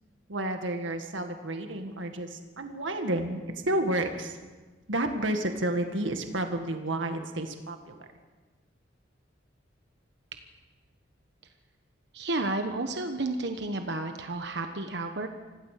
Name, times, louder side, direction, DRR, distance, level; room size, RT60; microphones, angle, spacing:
voice 1, 0.3-4.4 4.9-8.1, right 1 dB, 85° right, 5 dB, 1.9 m, -31 dB
voice 2, 12.1-15.3, right 2 dB, 60° right, 5 dB, 1.3 m, -31 dB
26.0 x 16.5 x 6.7 m, 1.3 s
head